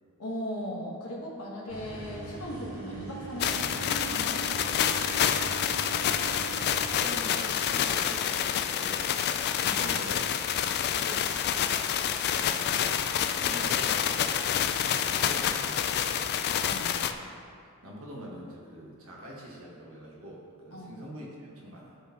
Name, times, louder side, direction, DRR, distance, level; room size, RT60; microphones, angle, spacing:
voice 1, 0.2-4.7 9.6-9.9 11.0-11.4 16.6-17.0 20.7-20.9, equal, 85° left, -3 dB, 1.2 m, -38 dB
sound 1, 1.7-6.8, right 4 dB, 40° right, 1.5 m, -41 dB
sound 2, 3.4-17.1, left 9 dB, 50° left, 0.3 m, -28 dB
voice 2, 5.8-10.3 12.3-12.8 13.1-16.3 17.6-22.0, equal, 70° right, -4 dB, 1.3 m, -44 dB
12.0 x 4.2 x 2.9 m, 2.3 s
head